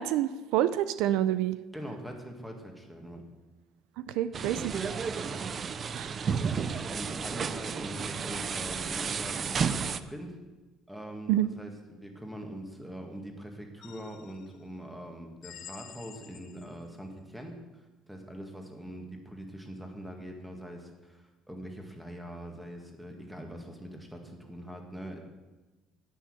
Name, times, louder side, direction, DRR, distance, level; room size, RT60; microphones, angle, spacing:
voice 1, 0.0-1.6 4.0-4.7 6.0-6.1 11.3-11.5, right 12 dB, 80° right, 14 dB, 0.5 m, -27 dB
voice 2, 1.7-3.2 5.2-5.4 6.9-10.4 10.9-17.8 18.1-25.2, equal, 5° right, 3 dB, 1.9 m, -43 dB
sound 1, 4.3-10.0, right 6 dB, 35° right, 0.5 m, -32 dB
sound 2, 13.8-14.6 15.4-16.9, left 9 dB, 65° left, 1.2 m, -49 dB
10.0 x 9.4 x 6.5 m, 1.2 s
cardioid pair, 125°, 0 cm